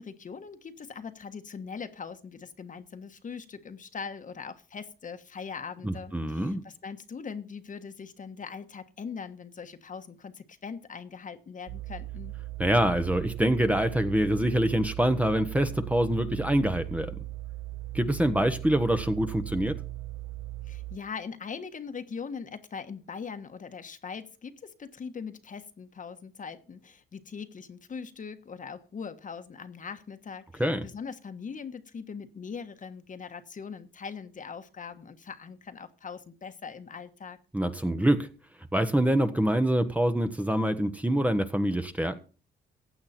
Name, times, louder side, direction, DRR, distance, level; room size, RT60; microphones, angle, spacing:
voice 1, 0.0-12.3 20.7-37.4, left 6 dB, 40° left, 1.4 m, -41 dB
voice 2, 5.8-6.6 12.6-17.2 17.9-19.8 30.6-30.8 37.5-38.3 38.7-42.2, right 1 dB, 5° right, 1.1 m, -25 dB
sound 1, 11.7-21.0, right 16 dB, 65° right, 1.1 m, -38 dB
15.5 x 8.6 x 4.3 m
cardioid pair, 90°, 20 cm